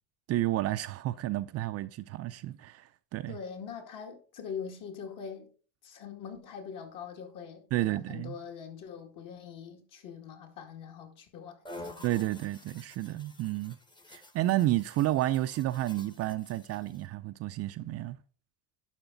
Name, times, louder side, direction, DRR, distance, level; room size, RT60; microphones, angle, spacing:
voice 1, 0.3-3.4 7.7-8.3 12.0-13.8 14.1-18.2, right 15 dB, 40° right, 0.4 m, -31 dB
voice 2, 3.3-5.5 5.8-12.1, left 7 dB, 55° left, 2.3 m, -43 dB
sound 1, 11.7-17.1, left 1 dB, 10° left, 0.8 m, -50 dB
11.5 x 4.9 x 3.9 m
cardioid pair, 135°, 38 cm